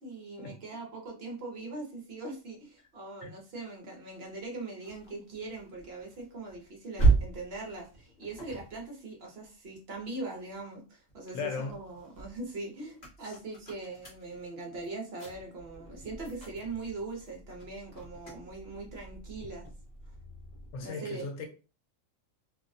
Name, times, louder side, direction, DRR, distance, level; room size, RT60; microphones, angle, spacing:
voice 1, 0.0-19.7 20.8-21.3, right 3 dB, 55° right, 0.9 m, -41 dB
sound 1, 4.1-10.6 11.1-20.9, right 3 dB, 35° left, 1.0 m, -35 dB
voice 2, 11.3-11.8 13.3-13.4 20.7-21.5, left 4 dB, 80° left, 1.0 m, -37 dB
2.6 x 2.1 x 2.5 m
omnidirectional pair, 1.4 m